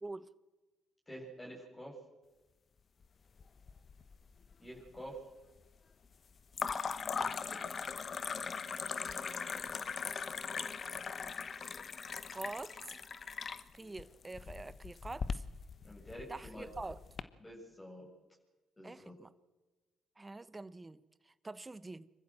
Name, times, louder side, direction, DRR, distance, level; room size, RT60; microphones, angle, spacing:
voice 1, 1.1-1.9 4.6-5.2 7.1-7.6 15.8-16.7 17.4-18.1 18.8-19.1, equal, 20° left, 7.6 m, -48 dB
sound 1, 3.4-4.2 4.4-5.1 6.5-17.2, left 5 dB, 50° left, 1.0 m, -40 dB
voice 2, 12.3-13.0 13.7-15.4 16.3-17.0 18.8-19.3 20.2-22.1, right 2 dB, 25° right, 1.1 m, -45 dB
25.5 x 14.5 x 7.8 m
hypercardioid pair, 50°, 0 cm